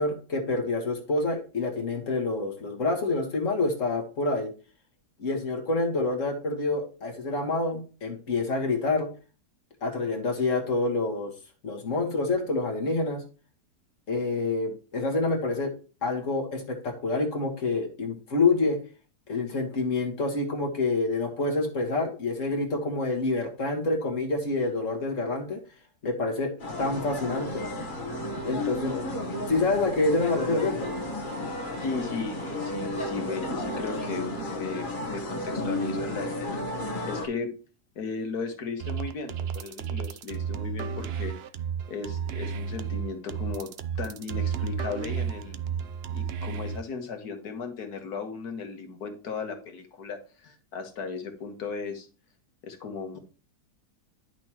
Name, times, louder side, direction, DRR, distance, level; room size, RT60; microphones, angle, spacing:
voice 1, 0.0-4.5 5.2-9.1 9.8-11.3 11.6-13.2 14.1-15.7 16.0-18.8 19.3-25.6 26.0-26.5 26.8-27.7 28.5-28.9 29.5-30.9, left 3 dB, 50° left, 2 dB, 1.9 m, -27 dB
sound 1, 26.6-37.3, left 1 dB, 35° left, 1.3 m, -33 dB
voice 2, 31.8-37.5 38.0-41.4 41.9-43.7 44.0-45.6 46.1-52.1 52.6-53.2, left 5 dB, 75° left, 5 dB, 1.9 m, -36 dB
sound 2, 38.8-46.8, right 7 dB, 70° right, 0.6 m, -32 dB
10.5 x 6.1 x 2.9 m, 0.36 s
omnidirectional pair, 1.7 m